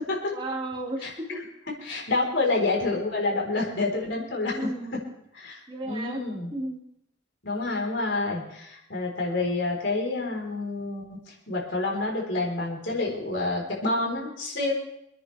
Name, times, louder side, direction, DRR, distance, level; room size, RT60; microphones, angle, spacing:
voice 1, 0.3-1.4 4.5-5.0 5.7-6.2 6.5-6.8, right 1 dB, 25° right, -1 dB, 2.4 m, -33 dB
voice 2, 1.8-4.7 5.3-6.5 7.4-14.7, left 2 dB, 65° left, -1 dB, 4.4 m, -28 dB
27.0 x 10.0 x 3.5 m, 0.81 s
head